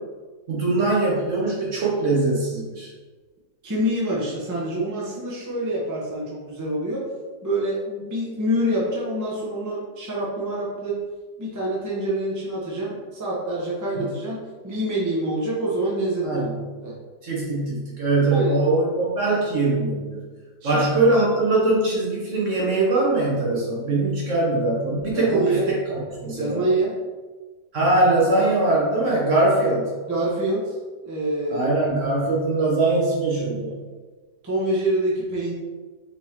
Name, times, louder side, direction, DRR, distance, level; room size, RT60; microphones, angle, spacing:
voice 1, 0.5-2.9 14.0-14.1 16.2-16.7 17.2-20.2 20.6-25.8 26.2-26.6 27.7-29.9 31.5-33.8, right 2 dB, 55° right, -4 dB, 0.9 m, -22 dB
voice 2, 3.6-7.0 7.4-11.0 11.4-16.5 16.8-17.0 18.3-18.6 20.6-20.9 25.1-25.6 26.3-27.0 30.1-30.7 31.0-31.7 34.4-35.5, right 1 dB, 20° right, -5 dB, 0.4 m, -26 dB
4.4 x 2.9 x 3.4 m, 1.3 s
omnidirectional pair, 2.0 m